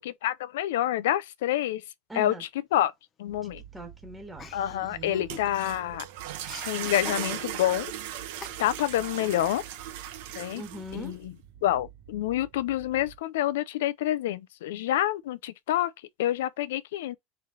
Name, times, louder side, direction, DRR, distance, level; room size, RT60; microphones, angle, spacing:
voice 1, 0.2-1.8 2.1-2.9 3.2-3.6 4.5-6.0 6.7-7.9 8.6-9.6 10.3-10.6 10.9-11.3 11.6-15.9 16.2-17.2, left 13 dB, 90° left, 0.5 m, -27 dB
voice 2, 2.1-2.4 3.4-5.3 10.5-11.1, equal, 5° right, 1.5 m, -42 dB
sound 1, 3.3-13.2, right 10 dB, 55° right, 1.2 m, -50 dB
Chuckle chortle, 4.4-5.8 6.0-7.7 8.4-9.0, left 6 dB, 25° left, 0.6 m, -44 dB
sound 2, 5.1-11.1, right 11 dB, 75° right, 0.9 m, -37 dB
4.0 x 3.2 x 3.9 m
supercardioid pair, 140°, 0 cm